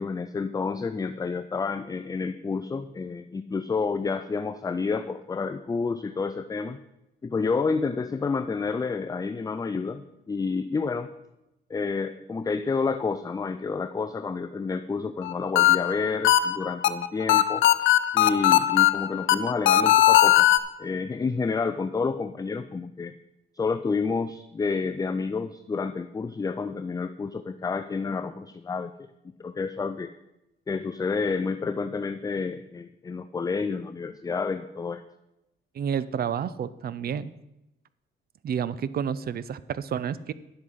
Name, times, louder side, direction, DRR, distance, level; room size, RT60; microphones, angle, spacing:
voice 1, 0.0-6.8 7.2-11.1 11.7-17.6 18.1-20.5 20.8-23.1 23.5-28.9 29.4-30.1 30.7-35.0, left 4 dB, 20° left, 11 dB, 0.4 m, -29 dB
sound 1, 15.2-20.6, left 13 dB, 75° left, 0.6 m, -19 dB
voice 2, 35.7-37.3 38.4-40.3, right 8 dB, 50° right, 17 dB, 0.6 m, -30 dB
10.0 x 7.9 x 5.6 m, 0.92 s
cardioid pair, 90°, 20 cm